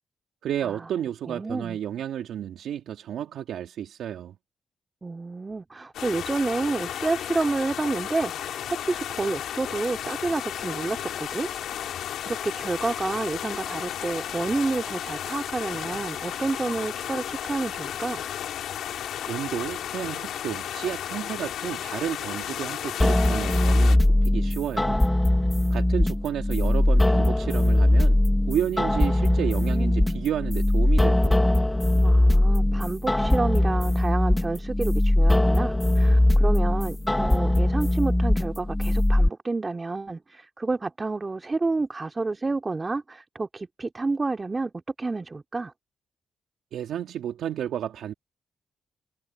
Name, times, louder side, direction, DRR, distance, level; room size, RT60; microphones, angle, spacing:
voice 1, 0.4-4.4 19.3-25.0 25.7-28.2 28.5-31.4 46.7-48.1, right 10 dB, 80° right, 2.6 m, -31 dB
voice 2, 1.3-1.8 5.0-11.5 11.8-11.9 12.3-18.2 29.0-30.3 32.0-44.7 45.0-45.7, right 3 dB, 30° right, 4.1 m, -30 dB
sound 1, 5.9-24.0, left 10 dB, 80° left, 3.5 m, -33 dB
sound 2, 23.0-39.3, left 1 dB, 15° left, 1.0 m, -21 dB
supercardioid pair, 55°, 0 cm